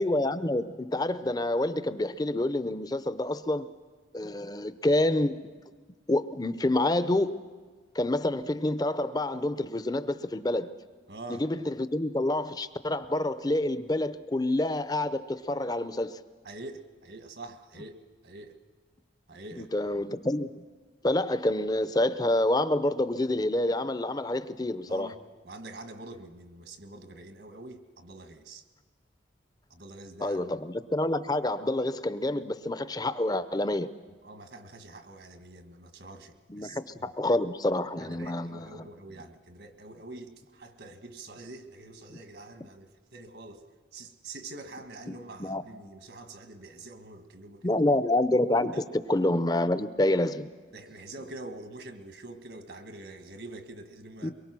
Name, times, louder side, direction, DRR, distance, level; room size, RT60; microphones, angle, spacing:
voice 1, 0.0-3.7 4.1-5.4 6.1-7.4 7.9-10.7 11.3-16.2 19.6-20.6 21.0-25.1 30.2-33.9 36.5-38.8 45.1-45.6 47.6-50.5 54.2-54.3, left 1 dB, 20° left, 0.6 m, -28 dB
voice 2, 11.1-11.4 16.4-18.0 18.2-18.6 19.3-20.1 24.9-25.2 25.4-28.6 29.7-30.6 34.2-37.1 38.0-43.6 43.9-47.8 48.7-48.8 50.7-54.3, right 2 dB, 70° right, 1.6 m, -45 dB
23.5 x 22.5 x 6.1 m
head